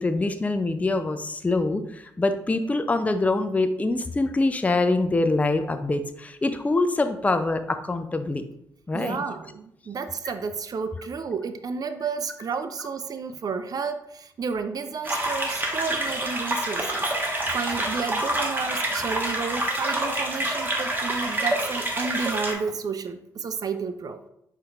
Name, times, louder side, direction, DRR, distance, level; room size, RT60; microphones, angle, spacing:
voice 1, 0.0-8.4 8.9-9.2, left 2 dB, 15° left, 8 dB, 0.4 m, -24 dB
voice 2, 8.9-24.2, right 5 dB, 45° right, 10 dB, 0.5 m, -31 dB
sound 1, 15.0-22.5, right 1 dB, 20° right, 1.2 m, -27 dB
4.4 x 4.4 x 2.4 m, 0.79 s
hypercardioid pair, 40°, 9 cm